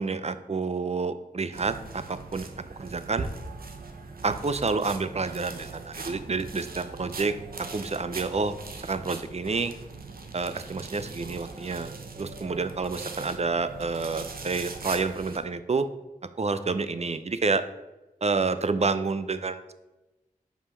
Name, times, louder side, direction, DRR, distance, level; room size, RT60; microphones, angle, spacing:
voice 1, 0.0-2.5 2.8-3.3 4.2-8.6 8.8-9.7 10.3-15.9 16.4-17.6 18.2-19.7, right 4 dB, 45° right, 12 dB, 0.5 m, -29 dB
sound 1, 1.5-15.4, right 4 dB, 75° right, 0.8 m, -40 dB
5.5 x 5.0 x 5.6 m, 1.0 s
cardioid pair, 50°, 15 cm